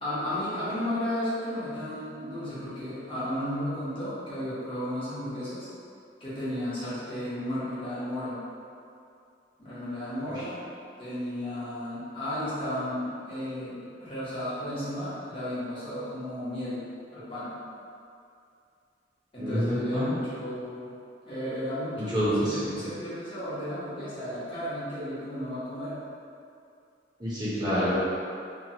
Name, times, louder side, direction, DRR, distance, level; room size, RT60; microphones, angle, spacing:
voice 1, 0.0-5.7 6.2-8.4 9.6-10.6 11.0-16.8 17.1-17.5 19.3-20.9 21.2-26.0, left 1 dB, 30° left, -12 dB, 0.9 m, -33 dB
voice 2, 19.4-20.1 22.0-22.8 27.2-27.9, equal, 25° right, -11 dB, 0.6 m, -28 dB
2.9 x 2.3 x 2.7 m, 2.4 s
head